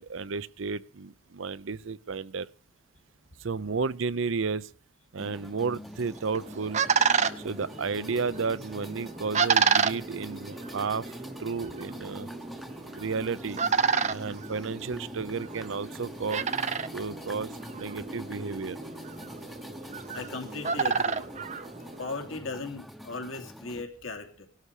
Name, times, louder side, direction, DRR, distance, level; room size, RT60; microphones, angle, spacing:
voice 1, 0.0-2.5 3.4-4.7 5.1-6.8 7.4-11.1 11.4-12.3 13.0-13.6 14.1-16.4 16.9-18.8, right 4 dB, 70° right, 0.6 m, -32 dB
sound 1, 5.2-23.8, equal, ahead, 0.8 m, -45 dB
sound 2, 6.1-22.3, right 6 dB, 35° right, 0.7 m, -31 dB
voice 2, 20.1-21.3 22.0-24.5, left 3 dB, 75° left, 2.7 m, -37 dB
18.0 x 12.5 x 4.9 m
head